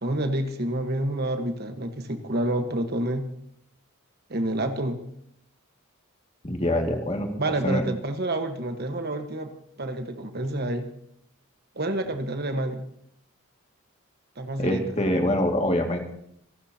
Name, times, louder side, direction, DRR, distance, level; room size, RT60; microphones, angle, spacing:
voice 1, 0.0-3.3 4.3-5.0 7.4-9.5 9.8-10.9 11.7-12.8 14.4-14.8, right 1 dB, 45° right, 6 dB, 1.3 m, -28 dB
voice 2, 6.4-7.3 7.6-7.8 14.6-16.1, left 1 dB, 30° left, 2 dB, 2.1 m, -24 dB
27.5 x 12.5 x 2.8 m, 0.71 s
head